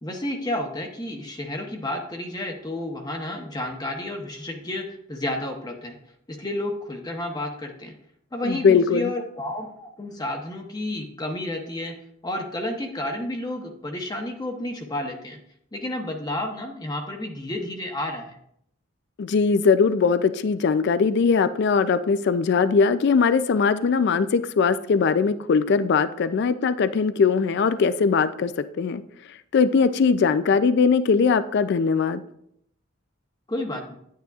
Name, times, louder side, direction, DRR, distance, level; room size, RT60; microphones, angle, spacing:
voice 1, 0.0-6.0 6.3-7.9 8.3-11.9 12.2-15.4 15.7-18.4 33.5-34.0, left 1 dB, 20° left, 2 dB, 0.8 m, -31 dB
voice 2, 8.4-9.1 19.2-28.5 28.8-29.0 29.5-32.2, left 5 dB, 55° left, 13 dB, 0.4 m, -20 dB
10.0 x 9.2 x 2.4 m, 0.72 s
head